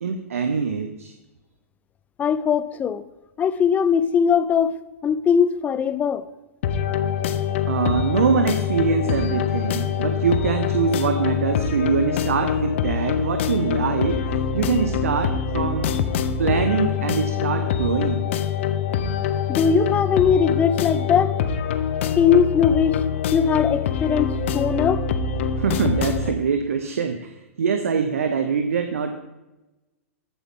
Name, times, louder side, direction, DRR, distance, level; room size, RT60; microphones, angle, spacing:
voice 1, 0.0-1.1 7.7-15.9 16.4-18.3 19.0-19.1 25.6-29.2, right 6 dB, 70° right, 1.0 m, -24 dB
voice 2, 2.2-3.0 3.4-4.7 5.0-6.2 19.5-21.3 22.2-23.0 23.3-25.1, left 7 dB, 20° left, 0.6 m, -20 dB
sound 1, 6.6-26.3, left 7 dB, 55° left, 0.9 m, -24 dB
14.5 x 8.5 x 3.8 m
hypercardioid pair, 110°, 8 cm